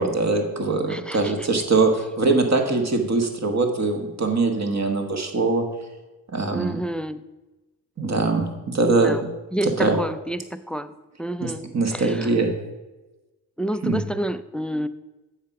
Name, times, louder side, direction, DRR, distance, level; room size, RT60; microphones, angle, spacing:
voice 1, 0.0-5.6 6.3-6.8 8.0-9.1 9.6-10.0 11.4-12.5 13.8-14.0, right 3 dB, 40° right, 4 dB, 1.5 m, -22 dB
voice 2, 0.9-1.5 6.5-7.3 8.9-9.2 9.5-12.3 13.6-14.9, right 1 dB, 5° left, 14 dB, 0.4 m, -29 dB
7.4 x 4.7 x 5.9 m, 1.1 s
supercardioid pair, 40°, 40 cm